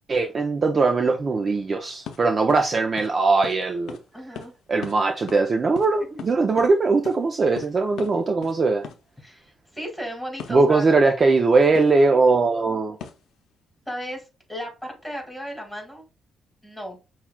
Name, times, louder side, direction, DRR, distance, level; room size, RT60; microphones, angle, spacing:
voice 1, 0.1-4.0 4.7-8.8 10.5-13.0, right 3 dB, 40° right, 0.5 m, -20 dB
sound 1, 2.0-2.2 2.5-2.6 3.0-3.1 3.4-3.6 3.9-4.0 4.3-4.5 4.8-5.0 5.3-5.4 5.7-6.7 7.0-7.2 7.6-7.7 8.0-8.1 8.4-8.6 8.8-9.0 10.4-10.6 11.7-11.9 13.0-13.3, left 7 dB, 75° left, 0.6 m, -37 dB
voice 2, 4.1-4.5 6.1-6.3 9.2-11.0 13.9-14.2 14.5-16.0 16.6-17.0, equal, ahead, 1.9 m, -35 dB
5.6 x 2.4 x 2.2 m
cardioid pair, 90°, 0 cm